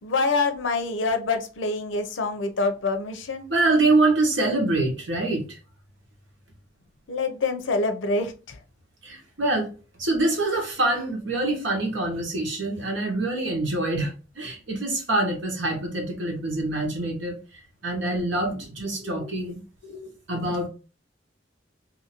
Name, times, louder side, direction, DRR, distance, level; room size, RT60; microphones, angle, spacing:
voice 1, 0.0-3.5 7.1-8.6 19.0-19.3 19.8-20.1, left 3 dB, 85° left, 7 dB, 0.6 m, -26 dB
voice 2, 3.5-5.6 9.0-9.7 10.0-17.4 17.8-19.6 20.3-20.7, right 2 dB, 85° right, 2 dB, 1.1 m, -25 dB
2.7 x 2.5 x 2.9 m, 0.34 s
head